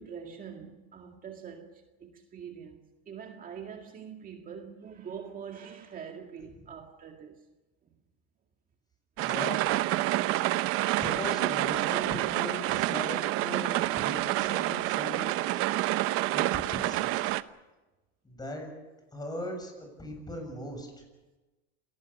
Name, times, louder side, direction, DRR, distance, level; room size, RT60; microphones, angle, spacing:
voice 1, 0.0-2.8 3.1-7.4 12.7-12.8 13.8-13.9, right 7 dB, 25° right, 2.1 m, -44 dB
voice 2, 9.2-9.7 11.0-15.6 16.3-17.3 18.2-18.7 19.1-20.9, left 1 dB, 15° left, 7.2 m, -39 dB
sound 1, 9.2-17.4, right 16 dB, 45° right, 0.9 m, -28 dB
28.5 x 18.5 x 7.1 m
supercardioid pair, 140°, 31 cm